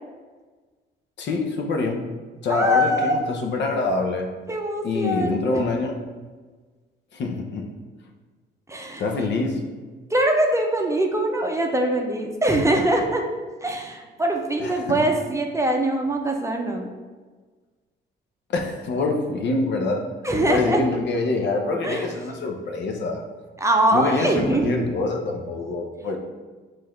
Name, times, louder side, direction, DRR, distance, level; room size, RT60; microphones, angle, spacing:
voice 1, 1.2-2.1 2.4-4.3 4.8-5.9 7.1-7.7 9.0-9.6 14.6-15.0 18.5-20.0 20.5-23.2 23.9-26.2, left 3 dB, 65° left, 3 dB, 0.7 m, -25 dB
voice 2, 2.5-3.1 4.5-5.6 8.7-9.3 10.1-13.2 13.6-16.9 20.2-20.8 21.8-22.1 23.6-24.9, right 1 dB, 15° right, 1 dB, 0.6 m, -23 dB
4.7 x 2.5 x 4.3 m, 1.4 s
cardioid pair, 90°, 20 cm